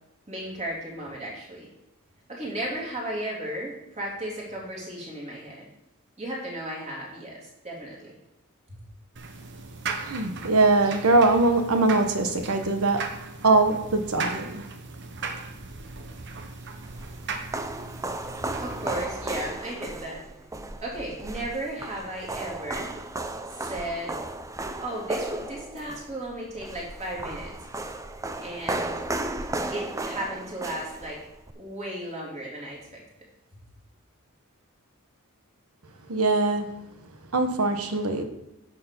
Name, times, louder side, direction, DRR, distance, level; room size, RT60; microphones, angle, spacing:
voice 1, 0.3-1.7 2.3-5.6 6.2-8.1 18.6-20.2 20.8-22.9 23.5-24.2 24.8-27.5 28.4-29.1 29.7-31.2 31.5-33.0, right 1 dB, 30° right, -4 dB, 3.4 m, -35 dB
sound 1, 9.2-19.0, right 4 dB, 55° right, 1.1 m, -37 dB
voice 2, 10.0-13.0 13.4-14.6 36.1-36.8 37.3-38.2, right 2 dB, 85° right, 7 dB, 1.3 m, -22 dB
sound 2, 16.6-31.5, right 2 dB, 15° right, 0.5 m, -35 dB
10.0 x 6.7 x 5.5 m, 0.91 s
head